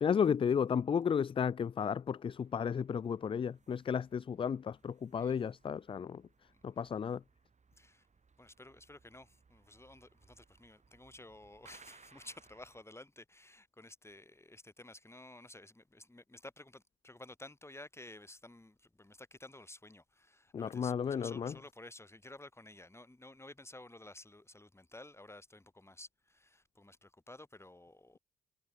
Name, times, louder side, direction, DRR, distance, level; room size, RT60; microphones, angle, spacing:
voice 1, 0.0-6.2 6.6-7.2 20.5-21.6, left 7 dB, 30° left, 0.4 m, -33 dB
sound 1, 2.2-12.8, right 5 dB, 40° right, 7.6 m, -65 dB
voice 2, 7.8-8.1 8.4-28.2, left 2 dB, 15° left, 4.9 m, -53 dB
hypercardioid pair, 50°, 18 cm